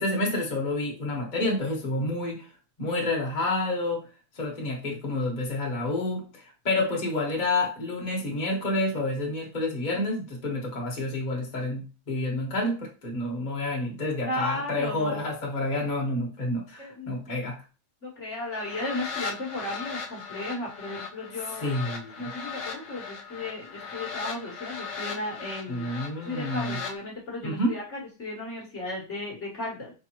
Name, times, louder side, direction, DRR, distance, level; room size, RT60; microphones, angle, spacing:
voice 1, 0.0-2.4 2.8-4.0 4.3-6.2 6.6-17.6 21.6-22.3 25.7-26.8 27.4-27.7, left 2 dB, 30° left, -1 dB, 1.2 m, -29 dB
voice 2, 14.3-15.2 16.8-17.1 18.0-29.9, left 2 dB, 45° left, -3 dB, 1.4 m, -35 dB
sound 1, 18.5-26.9, left 5 dB, 70° left, 1.5 m, -38 dB
5.3 x 3.5 x 2.9 m, 0.33 s
omnidirectional pair, 1.8 m